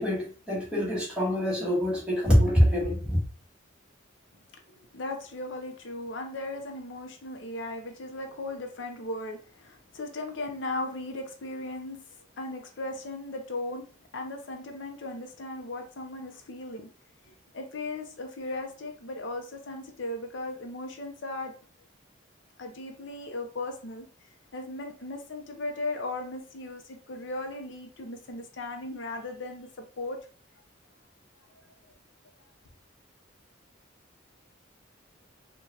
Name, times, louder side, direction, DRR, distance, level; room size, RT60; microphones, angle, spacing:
voice 1, 0.0-3.2, equal, 5° right, 1.3 m, -24 dB
voice 2, 4.7-12.0 12.4-13.9 14.1-16.9 17.2-21.6 22.6-24.1 24.5-29.7 30.0-30.2 31.5-31.7, left 2 dB, 70° left, 0.6 m, -37 dB
4.6 x 2.3 x 2.7 m
head